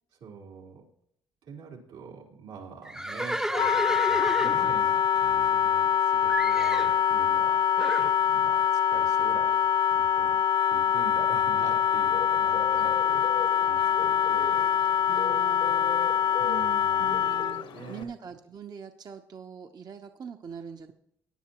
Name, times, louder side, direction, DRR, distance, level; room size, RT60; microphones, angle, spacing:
voice 1, 0.2-0.9 1.5-7.6 8.2-9.6 9.9-10.4 10.7-14.7 16.4-17.2 17.7-18.1, right 5 dB, 85° right, -2 dB, 4.0 m, -44 dB
Livestock farm animals working animals, 2.8-5.9 6.3-7.0 7.8-8.2, right 1 dB, 5° right, 0.6 m, -32 dB
Wind instrument woodwind instrument, 3.5-17.6, left 9 dB, 50° left, 0.4 m, -24 dB
Bird, 11.5-18.0, left 7 dB, 75° left, 1.3 m, -40 dB
voice 2, 15.1-16.1 17.0-20.9, right 7 dB, 45° right, 5 dB, 0.9 m, -43 dB
18.5 x 10.0 x 3.0 m, 0.73 s
cardioid pair, 80°, 9 cm